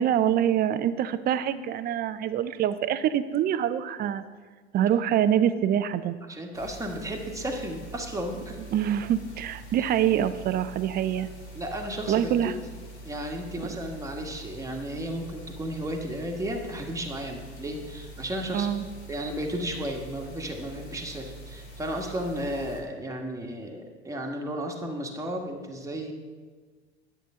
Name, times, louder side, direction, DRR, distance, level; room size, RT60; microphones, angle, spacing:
voice 1, 0.0-4.2 4.7-6.1 8.7-11.3 12.1-12.5 18.5-18.8, right 10 dB, 30° right, 13 dB, 0.5 m, -25 dB
voice 2, 6.3-8.6 11.5-12.6 13.0-18.7 19.1-26.1, right 1 dB, 10° right, 1 dB, 1.4 m, -34 dB
sound 1, 6.5-22.8, right 1 dB, 75° left, 2.7 m, -44 dB
10.5 x 7.9 x 3.7 m, 1.5 s
hypercardioid pair, 85°, 34 cm